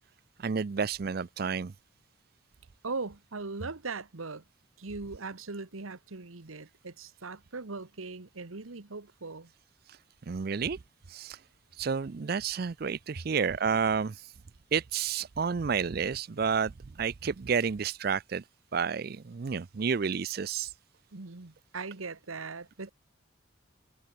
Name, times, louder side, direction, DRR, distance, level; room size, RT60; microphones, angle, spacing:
voice 1, 0.4-1.7 10.3-10.8 11.1-11.4 11.8-14.2 14.7-16.7 17.0-18.4 18.7-20.7, right 6 dB, 45° right, 0.4 m, -30 dB
voice 2, 2.8-4.4 4.8-9.5 21.1-22.9, right 3 dB, 85° right, 1.3 m, -39 dB
head